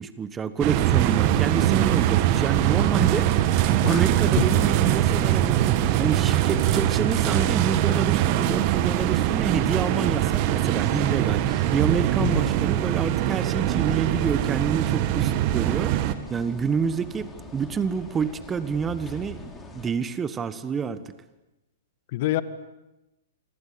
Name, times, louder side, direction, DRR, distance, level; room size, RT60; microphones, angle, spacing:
voice 1, 0.0-3.4 3.8-21.1, right 6 dB, 15° right, 13 dB, 1.4 m, -28 dB
sound 1, 0.6-16.1, right 13 dB, 40° right, 1.9 m, -22 dB
voice 2, 0.9-1.0 3.8-4.0 4.4-4.5 12.2-12.4 22.1-22.4, left 15 dB, 50° left, 13 dB, 1.8 m, -25 dB
sound 2, 2.4-19.9, left 3 dB, 15° left, 4.7 m, -41 dB
28.0 x 24.5 x 8.6 m, 0.97 s
hypercardioid pair, 120°, 0 cm